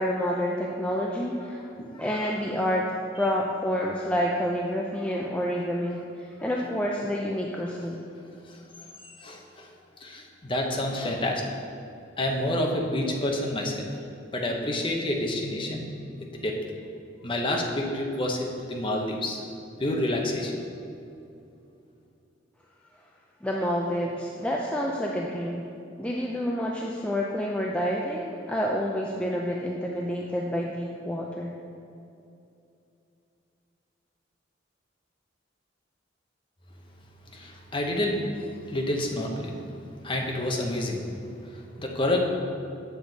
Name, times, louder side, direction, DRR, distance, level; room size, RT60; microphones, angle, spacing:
voice 1, 0.0-1.6 2.0-2.8 3.2-8.1 23.4-25.7 26.0-31.5, equal, 5° left, -2 dB, 0.4 m, -28 dB
voice 2, 9.0-9.7 10.0-11.6 12.2-13.9 14.3-15.9 16.3-16.6 17.2-19.4 19.8-20.7 37.3-38.2 38.7-39.6 40.0-41.1 41.4-42.2, left 1 dB, 25° left, 1 dB, 0.8 m, -28 dB
7.8 x 7.0 x 4.0 m, 2.6 s
head